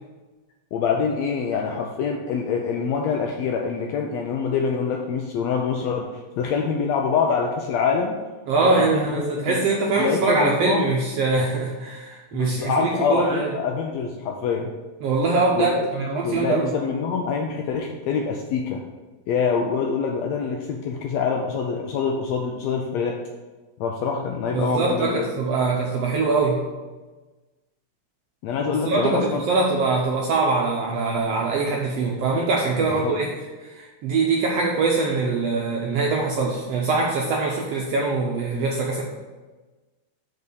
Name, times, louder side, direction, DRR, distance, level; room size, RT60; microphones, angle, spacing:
voice 1, 0.7-6.1 6.4-8.2 8.6-9.6 10.0-10.8 12.3-14.7 15.5-15.9 16.2-18.8 19.3-23.2 23.8-25.3 28.4-29.4 32.8-33.2, left 5 dB, 80° left, 1 dB, 1.6 m, -25 dB
voice 2, 8.5-13.5 15.0-16.7 24.5-26.6 28.8-33.3 33.7-39.0, right 3 dB, 75° right, -1 dB, 1.5 m, -23 dB
5.3 x 5.2 x 6.3 m, 1.2 s
omnidirectional pair, 3.6 m